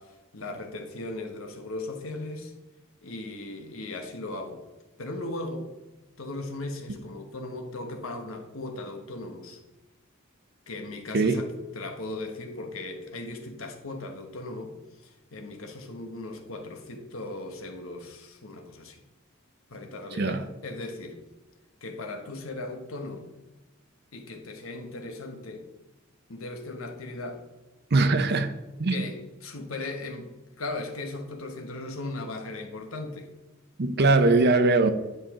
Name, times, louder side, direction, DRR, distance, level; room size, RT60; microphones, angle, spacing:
voice 1, 0.0-2.5 3.0-4.6 5.0-5.7 6.2-9.6 10.7-11.5 11.7-19.0 19.7-21.2 21.8-23.3 24.1-25.7 26.3-27.4 28.9-33.3, left 2 dB, 85° left, 1.3 m, -37 dB
voice 2, 20.1-20.5 27.9-29.1 33.8-34.9, right 3 dB, 55° right, 0.7 m, -22 dB
9.8 x 5.4 x 3.8 m
head